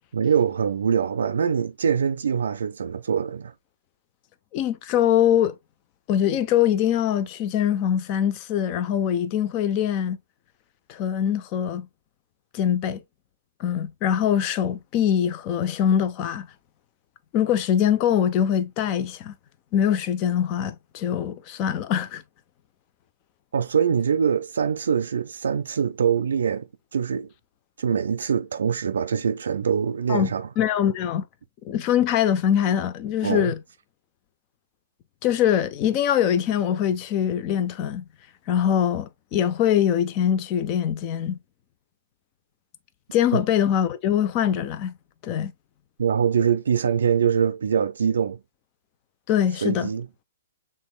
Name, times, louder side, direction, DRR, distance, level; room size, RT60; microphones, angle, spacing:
voice 1, 0.1-3.5 23.5-27.3 27.8-30.5 33.2-33.5 43.3-43.4 46.0-48.4 49.5-50.1, right 7 dB, 80° right, 0.4 m, -23 dB
voice 2, 4.5-5.5 6.1-10.2 10.9-11.9 12.5-13.0 13.6-16.5 17.3-19.3 19.7-22.2 30.1-30.3 30.6-31.2 31.6-33.6 35.2-38.0 38.5-41.4 43.1-44.9 45.2-45.5 49.3-49.9, left 9 dB, 35° left, 0.6 m, -23 dB
6.1 x 3.7 x 2.2 m
hypercardioid pair, 145°, 0 cm